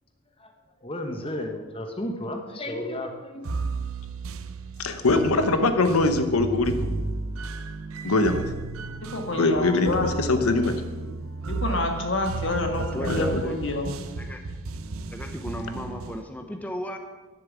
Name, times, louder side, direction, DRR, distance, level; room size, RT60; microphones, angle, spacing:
voice 1, 0.8-3.6, left 1 dB, 25° left, 4 dB, 1.0 m, -33 dB
sound 1, 3.5-16.2, right 3 dB, 75° right, 0.7 m, -33 dB
voice 2, 4.8-6.7 8.0-8.5 9.4-10.8 13.1-13.4, left 2 dB, 90° left, 8 dB, 1.0 m, -22 dB
voice 3, 9.1-10.4 11.5-13.9, left 2 dB, 55° left, 3 dB, 1.8 m, -28 dB
voice 4, 12.8-13.6 14.2-14.4 15.1-17.0, equal, 5° left, 5 dB, 0.6 m, -35 dB
11.0 x 7.0 x 8.4 m, 1.3 s
head